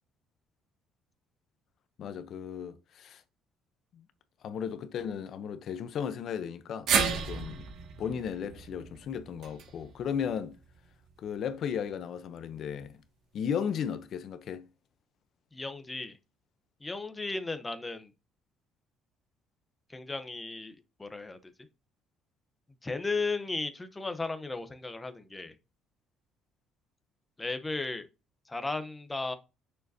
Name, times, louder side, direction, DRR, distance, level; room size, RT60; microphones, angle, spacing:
voice 1, 2.0-3.2 3.9-4.0 4.4-7.7 8.0-10.6 11.2-13.0 13.3-14.7, left 7 dB, 50° left, 0.7 m, -35 dB
sound 1, 6.9-11.1 11.5-11.6 12.7-12.8, right 6 dB, 60° right, 1.9 m, -33 dB
voice 2, 15.5-16.2 16.8-18.1 19.9-21.4 22.8-25.5 27.4-28.1 28.5-29.4, left 3 dB, 10° left, 0.8 m, -35 dB
9.0 x 6.6 x 2.7 m
cardioid pair, 155°, 0 cm